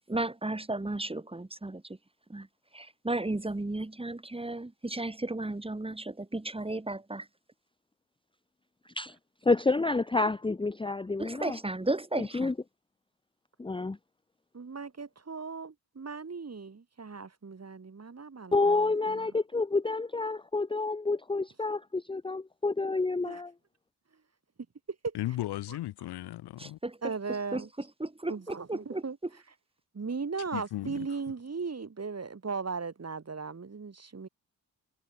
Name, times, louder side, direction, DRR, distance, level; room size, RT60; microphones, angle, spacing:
voice 1, 0.1-1.8 2.3-2.5 2.7-7.3 11.2-12.5 26.6-27.1 27.5-29.0, right 2 dB, 15° right, 2.1 m, -34 dB
voice 2, 9.4-11.6 12.2-12.5 13.6-14.0 18.5-23.5, left 3 dB, 15° left, 0.8 m, -29 dB
voice 3, 14.5-19.2 23.2-23.4 25.0-25.1 27.0-27.7 28.3-29.2 29.9-34.3, right 4 dB, 40° right, 3.9 m, -37 dB
voice 4, 25.1-26.8 30.5-31.1, left 15 dB, 85° left, 1.4 m, -35 dB
supercardioid pair, 45°, 39 cm